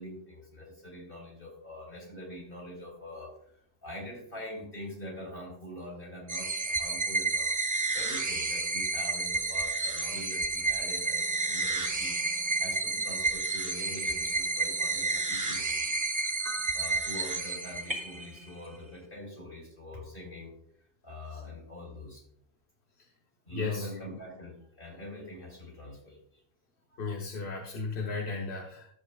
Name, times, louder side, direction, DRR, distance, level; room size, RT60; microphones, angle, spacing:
voice 1, 0.0-7.5 7.9-12.2 12.6-15.9 16.7-20.5 21.0-22.2 23.5-26.4 26.9-27.0, left 1 dB, 55° left, -1 dB, 4.1 m, -44 dB
sound 1, 6.3-18.2, right 3 dB, 25° right, 0.5 m, -30 dB
sound 2, 9.9-19.1, equal, 60° right, 1.9 m, -47 dB
voice 2, 23.5-23.9 27.0-28.9, left 4 dB, 85° left, 0 dB, 1.2 m, -35 dB
12.5 x 7.9 x 2.3 m, 0.66 s
omnidirectional pair, 1.1 m